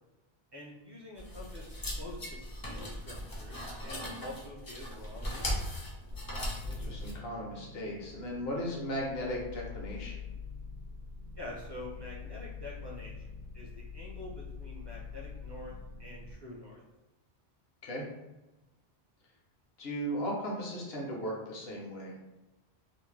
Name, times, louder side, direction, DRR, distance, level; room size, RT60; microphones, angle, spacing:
voice 1, 0.5-5.6 11.4-13.3 13.5-15.7 16.0-16.8, left 1 dB, 35° right, -4 dB, 0.4 m, -46 dB
sound 1, 1.2-7.1, equal, 40° left, 0.3 m, -38 dB
voice 2, 3.8-4.1 6.5-10.2 17.8-18.0 19.8-22.2, equal, 70° left, -3 dB, 1.0 m, -37 dB
sound 2, 6.1-16.3, left 5 dB, 85° right, 0.9 m, -45 dB
2.6 x 2.0 x 3.1 m, 1.1 s
omnidirectional pair, 1.1 m